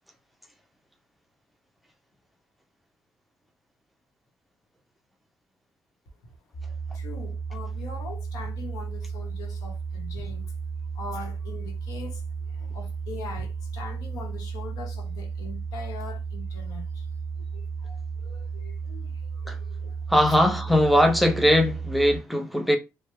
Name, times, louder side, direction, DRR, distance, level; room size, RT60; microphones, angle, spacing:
sound 1, 6.5-22.2, right 5 dB, 50° left, 1.3 m, -34 dB
voice 1, 6.9-10.5 10.9-20.4, left 4 dB, 90° left, 1.0 m, -42 dB
voice 2, 20.1-22.8, equal, ahead, 0.4 m, -20 dB
3.2 x 2.1 x 3.1 m
cardioid pair, 165°, 6 cm